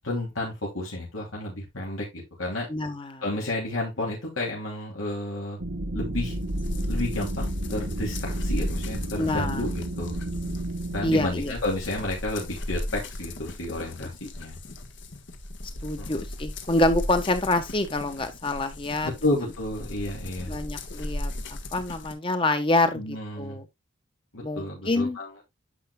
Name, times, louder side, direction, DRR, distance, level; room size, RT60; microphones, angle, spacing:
voice 1, 0.0-2.7 3.2-5.6 5.9-6.3 6.9-10.1 10.9-14.6 16.0-16.1 19.0-20.6 22.9-23.6 24.3-25.3, left 1 dB, 85° left, 2.9 m, -31 dB
voice 2, 2.7-3.2 9.2-9.6 11.0-11.5 15.8-19.1 20.5-23.7 24.4-25.2, left 2 dB, 25° left, 1.1 m, -26 dB
sound 1, 5.6-11.2, right 1 dB, 75° right, 1.4 m, -31 dB
sound 2, 6.2-22.1, left 1 dB, 60° left, 1.4 m, -36 dB
10.0 x 6.6 x 2.3 m
head